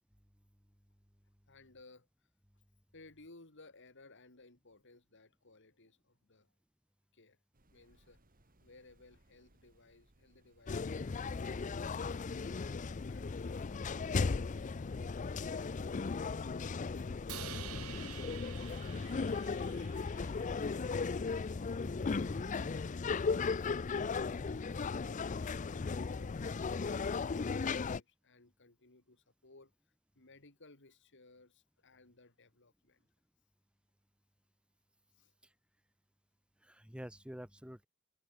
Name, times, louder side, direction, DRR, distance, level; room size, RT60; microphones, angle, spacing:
voice 1, 1.5-2.3 2.9-6.5 7.1-7.4 7.7-11.3 11.9-12.3 13.1-15.7 16.4-17.9 18.5-19.8 20.2-21.4 22.3-23.8 24.4-33.1 35.1-35.3, left 3 dB, 60° left, 2.9 m, -61 dB
sound 1, 7.5-17.2, right 1 dB, 40° right, 2.7 m, -69 dB
sound 2, 10.7-28.0, left 4 dB, 35° left, 0.4 m, -36 dB
Crash cymbal, 17.3-21.5, right 11 dB, 80° right, 1.3 m, -50 dB
voice 2, 21.8-22.7 36.7-37.9, equal, 5° right, 3.3 m, -47 dB
head